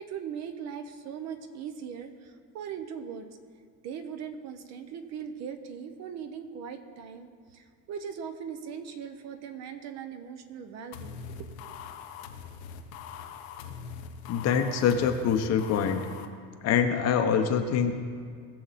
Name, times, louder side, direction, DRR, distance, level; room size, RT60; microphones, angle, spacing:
voice 1, 0.0-3.3 3.8-11.7, right 7 dB, 40° right, 8 dB, 0.9 m, -40 dB
sound 1, 10.9-16.3, left 7 dB, 80° left, 1.1 m, -42 dB
voice 2, 14.3-16.0 16.6-18.0, left 7 dB, 40° left, 6 dB, 0.9 m, -25 dB
19.5 x 7.0 x 4.2 m, 2.1 s
cardioid pair, 155°, 40 cm